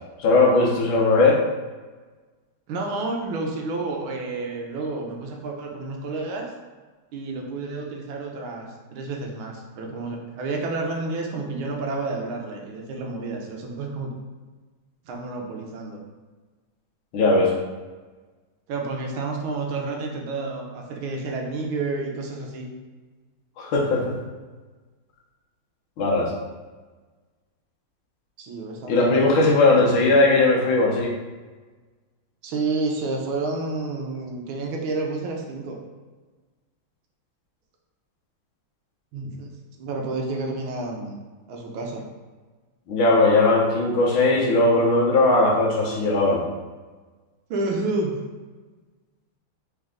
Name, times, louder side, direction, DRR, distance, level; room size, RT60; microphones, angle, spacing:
voice 1, 0.2-1.4 17.1-17.5 23.6-24.1 26.0-26.3 28.9-31.1 42.9-46.4, left 2 dB, 75° left, -2 dB, 1.6 m, -18 dB
voice 2, 2.7-6.5 7.1-14.1 15.0-16.0 18.7-22.7 28.4-30.3 32.4-35.8 39.1-39.5 39.8-41.2 41.5-42.0 47.5-48.2, right 3 dB, 75° right, 1 dB, 1.5 m, -30 dB
3.9 x 3.3 x 3.6 m, 1.3 s
omnidirectional pair, 2.3 m